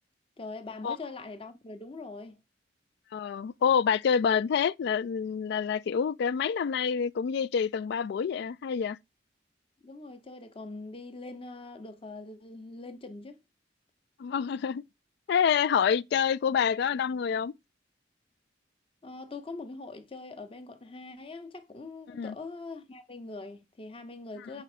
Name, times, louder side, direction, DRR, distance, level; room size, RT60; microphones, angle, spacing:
voice 1, 0.4-2.4 9.8-13.4 19.0-24.6, left 3 dB, 30° left, 0.8 m, -42 dB
voice 2, 3.1-9.0 14.2-14.8 15.3-17.5 22.1-22.4, left 7 dB, 65° left, 0.3 m, -27 dB
4.9 x 4.3 x 4.9 m
head